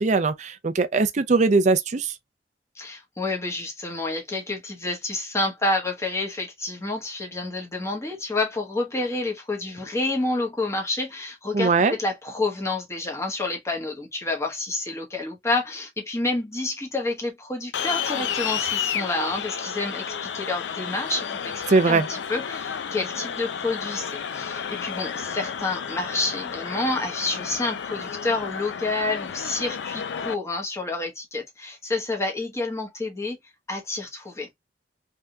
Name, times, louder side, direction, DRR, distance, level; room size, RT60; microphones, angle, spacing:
voice 1, 0.0-2.1 11.5-11.9 21.7-22.1, right 3 dB, 40° right, 0.5 m, -20 dB
voice 2, 2.7-33.4 33.7-34.5, left 2 dB, 15° left, 1.0 m, -29 dB
sound 1, 17.7-30.3, left 7 dB, 90° left, 0.4 m, -31 dB
3.5 x 2.7 x 2.3 m
head